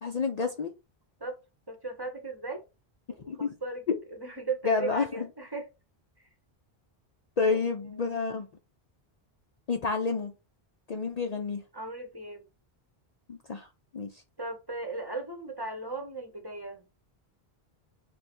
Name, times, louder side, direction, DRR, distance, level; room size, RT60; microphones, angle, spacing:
voice 1, 0.0-0.7 3.3-3.5 4.6-5.3 7.4-8.5 9.7-10.3 10.9-11.6 13.3-13.7 13.9-14.2, left 4 dB, 50° left, 0.6 m, -29 dB
voice 2, 1.7-2.6 3.1-3.3 3.6-3.8 4.1-5.7 6.2-6.3 7.5-7.6 7.9-8.1 11.7-12.5 14.4-16.9, right 3 dB, 25° right, 0.9 m, -37 dB
3.4 x 3.3 x 4.2 m
omnidirectional pair, 1.0 m